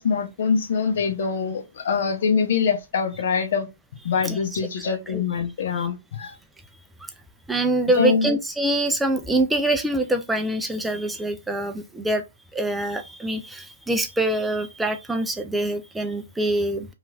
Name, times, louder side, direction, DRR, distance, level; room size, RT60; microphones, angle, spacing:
voice 1, 0.0-3.7 4.0-6.3 7.9-8.3, left 6 dB, 55° left, 0.7 m, -24 dB
voice 2, 4.2-4.6 4.9-5.2 5.8-5.9 7.5-12.2 12.5-16.9, right 1 dB, 5° right, 0.3 m, -25 dB
3.0 x 2.4 x 2.4 m
hypercardioid pair, 135°, 0 cm